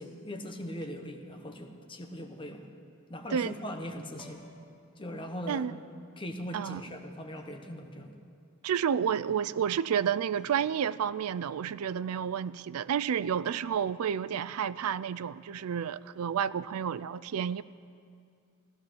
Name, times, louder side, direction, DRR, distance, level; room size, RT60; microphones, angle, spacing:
voice 1, 0.0-2.7 3.1-4.4 5.0-5.7 6.2-8.1, equal, 25° left, 4 dB, 1.1 m, -40 dB
sound 1, 4.2-4.7 6.1-6.2 7.4-7.8 10.3-10.8 11.1-11.2 13.0-13.1 13.4-14.0 16.0-16.2, left 1 dB, 5° right, 2.5 m, -56 dB
voice 2, 8.6-17.6, right 8 dB, 85° right, 15 dB, 0.4 m, -30 dB
16.0 x 13.0 x 6.9 m, 2.4 s
head